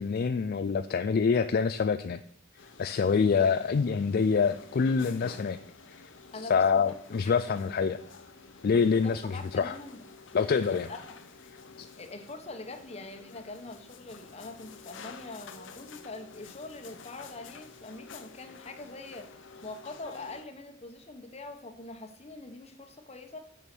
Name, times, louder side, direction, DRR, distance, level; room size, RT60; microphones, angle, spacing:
voice 1, 0.0-2.2 2.8-5.6 6.0-6.1 6.5-8.0 8.6-9.7 10.3-10.9 11.8-11.9, left 5 dB, 50° left, 10 dB, 0.4 m, -26 dB
sound 1, 2.6-20.4, left 5 dB, 70° left, 0.8 m, -50 dB
voice 2, 6.3-7.7 8.9-10.0 10.3-11.2 12.0-23.4, left 2 dB, 35° left, 6 dB, 1.1 m, -44 dB
7.3 x 6.7 x 6.1 m, 0.65 s
head